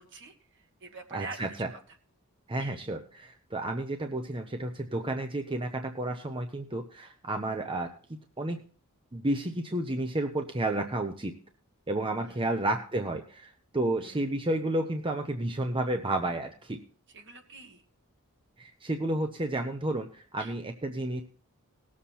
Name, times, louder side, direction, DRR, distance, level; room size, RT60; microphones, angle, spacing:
voice 1, 0.0-1.8 2.6-2.8 12.2-12.6 14.0-14.2 17.1-17.8 20.4-20.5, right 3 dB, 55° right, 4 dB, 1.9 m, -46 dB
voice 2, 1.1-1.7 2.5-8.6 9.1-11.3 11.9-16.8 18.6-21.2, right 1 dB, 25° right, 5 dB, 0.8 m, -31 dB
18.5 x 7.4 x 4.3 m, 0.41 s
head